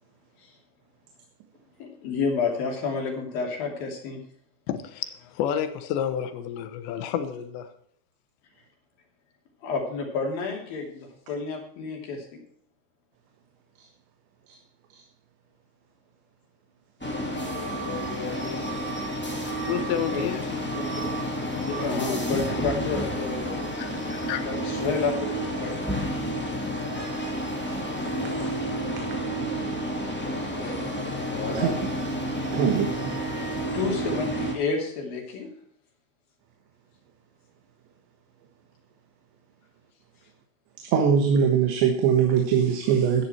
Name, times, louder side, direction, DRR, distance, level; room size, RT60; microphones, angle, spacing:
voice 1, 1.8-4.2 9.6-12.3 20.0-20.2 20.7-21.1 21.5-25.9 30.4-31.9 33.7-35.5, left 4 dB, 60° left, 4.4 m, -31 dB
voice 2, 4.7-7.7 17.7-18.7 19.7-20.6 23.8-24.4, left 9 dB, 85° left, 3.4 m, -31 dB
sound 1, 17.0-34.5, equal, 5° left, 1.1 m, -30 dB
voice 3, 32.5-33.1 40.9-43.2, right 7 dB, 90° right, 3.7 m, -22 dB
13.5 x 10.0 x 4.4 m
omnidirectional pair, 4.9 m